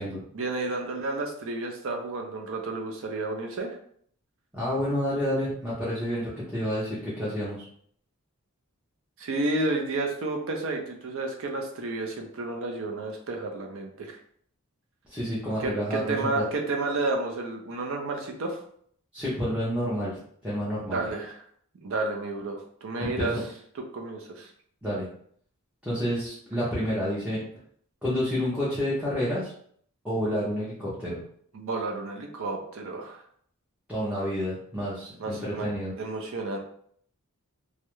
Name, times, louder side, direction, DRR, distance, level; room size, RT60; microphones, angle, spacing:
voice 1, 0.3-3.7 9.2-14.2 15.6-18.6 20.9-21.4 21.8-23.3 23.7-24.5 31.5-33.2 35.2-35.7 36.0-36.6, right 2 dB, 60° right, 2 dB, 0.5 m, -31 dB
voice 2, 4.5-7.6 15.1-16.4 19.1-21.0 23.0-23.4 24.8-25.1 25.8-27.4 28.0-29.5 30.0-31.2 33.9-35.9, equal, 5° right, -9 dB, 0.6 m, -29 dB
2.3 x 2.0 x 2.9 m, 0.62 s
head